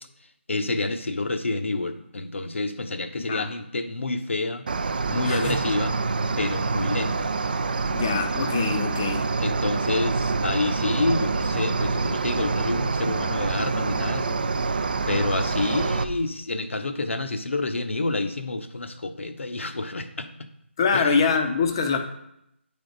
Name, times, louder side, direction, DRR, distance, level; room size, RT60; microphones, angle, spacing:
voice 1, 0.5-4.6 5.1-5.9 6.4-7.3 9.4-14.4 14.7-20.3 20.9-21.2, left 2 dB, 75° left, 7 dB, 0.8 m, -28 dB
Cricket, 4.7-16.0, right 4 dB, 45° right, 0.4 m, -26 dB
voice 2, 5.3-5.6 7.9-9.3 20.8-22.0, left 5 dB, 20° left, 5 dB, 0.5 m, -24 dB
sound 1, 9.6-16.2, right 2 dB, 85° right, 0.6 m, -36 dB
9.7 x 3.5 x 3.9 m, 0.78 s
figure-of-eight pair, 170°, 7 cm